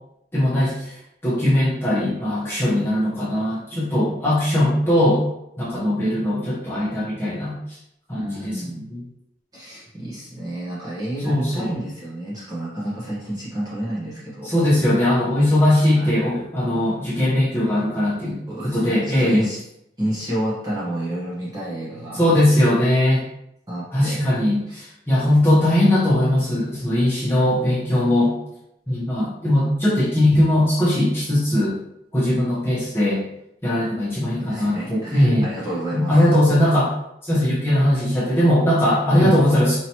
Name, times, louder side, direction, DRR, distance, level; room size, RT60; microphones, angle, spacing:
voice 1, 0.3-5.2 5.6-7.5 8.1-8.6 8.9-9.0 11.2-11.8 14.4-18.4 18.6-19.4 22.1-23.2 23.9-28.3 28.9-31.8 32.1-33.2 33.6-35.5 35.9-36.9 37.2-39.8, left 1 dB, 15° left, -9 dB, 0.8 m, -19 dB
voice 2, 8.1-8.8 9.5-14.5 15.9-16.1 17.5-17.6 18.5-19.6 20.0-22.2 23.7-24.2 24.7-24.8 34.4-36.4 39.2-39.4, right 1 dB, 20° right, -8 dB, 0.9 m, -29 dB
4.4 x 2.8 x 2.9 m, 0.80 s
head